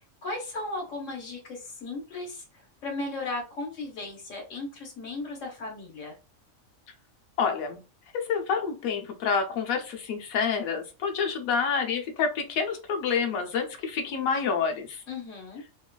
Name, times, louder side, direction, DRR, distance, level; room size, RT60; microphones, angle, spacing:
voice 1, 0.2-2.4 2.8-6.2 15.1-15.6, left 2 dB, 65° left, 0 dB, 1.4 m, -36 dB
voice 2, 7.4-7.8 8.1-15.0, left 6 dB, 85° left, 4 dB, 1.1 m, -28 dB
3.0 x 2.4 x 2.2 m, 0.32 s
omnidirectional pair, 1.4 m